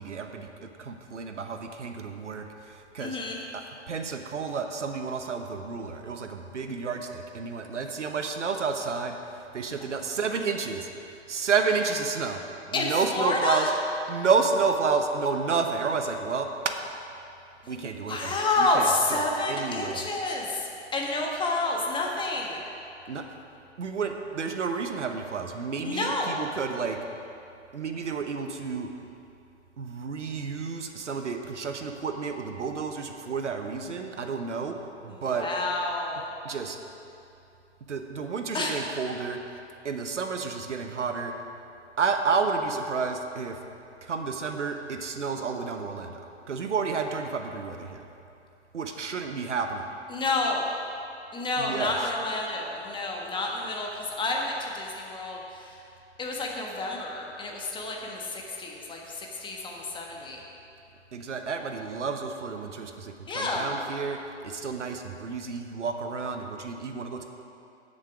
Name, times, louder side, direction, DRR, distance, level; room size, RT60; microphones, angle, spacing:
voice 1, 0.0-2.4 2.9-3.2 3.5-3.6 3.9-9.2 9.5-10.9 11.3-12.4 12.7-13.7 14.1-16.5 17.7-20.1 23.1-23.2 23.8-27.0 27.7-28.9 29.8-34.7 35.0-35.5 36.4-36.8 37.9-39.4 39.8-41.3 42.0-43.5 44.0-48.0 48.7-49.8 51.6-52.1 61.1-64.2 64.4-67.3, right 5 dB, 80° right, 5 dB, 1.1 m, -30 dB
voice 2, 3.0-3.4 12.7-13.7 17.6-22.6 25.8-26.4 35.1-36.3 38.5-38.8 50.1-50.7 51.3-55.8 56.2-60.4 63.3-63.7, left 2 dB, 15° left, -1 dB, 1.4 m, -29 dB
15.0 x 6.7 x 4.9 m, 2.7 s
figure-of-eight pair, 115°, 36 cm